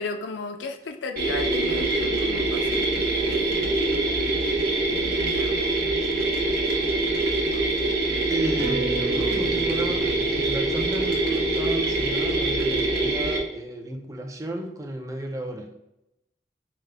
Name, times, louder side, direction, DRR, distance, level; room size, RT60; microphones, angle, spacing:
voice 1, 0.0-3.8 4.9-5.7, left 4 dB, 75° left, 7 dB, 0.4 m, -35 dB
sound 1, 1.2-13.4, right 2 dB, 55° right, 0.9 m, -24 dB
voice 2, 8.3-15.7, right 1 dB, 20° right, 3 dB, 0.4 m, -32 dB
sound 2, 8.6-13.5 13.9-14.0, right 5 dB, 90° right, 1.0 m, -38 dB
4.8 x 2.0 x 3.3 m, 0.84 s
head